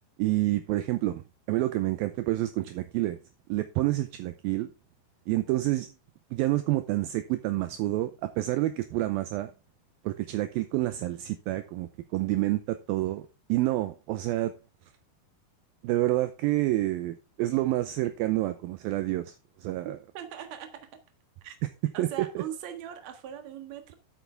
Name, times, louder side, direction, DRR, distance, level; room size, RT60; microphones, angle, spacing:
voice 1, 0.2-1.2 1.5-3.2 3.5-4.7 5.3-5.9 6.3-9.5 10.0-14.5 15.8-19.3 19.6-20.0 22.0-22.1 22.4-22.5, right 16 dB, 80° right, 2.1 m, -28 dB
voice 2, 19.8-20.9 21.4-21.6 21.9-23.9, right 9 dB, 55° right, 2.2 m, -40 dB
10.5 x 8.2 x 3.5 m
omnidirectional pair, 4.9 m